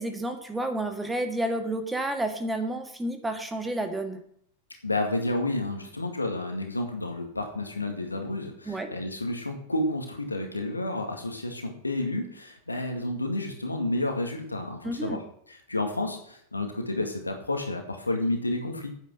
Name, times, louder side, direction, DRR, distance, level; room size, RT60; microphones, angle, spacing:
voice 1, 0.0-4.2 8.7-8.9 14.8-15.2, right 1 dB, 10° right, 6 dB, 1.7 m, -30 dB
voice 2, 4.8-15.2 15.5-18.9, left 2 dB, 80° left, 4 dB, 2.1 m, -30 dB
9.4 x 9.0 x 6.3 m, 0.67 s
figure-of-eight pair, 90°, 0 cm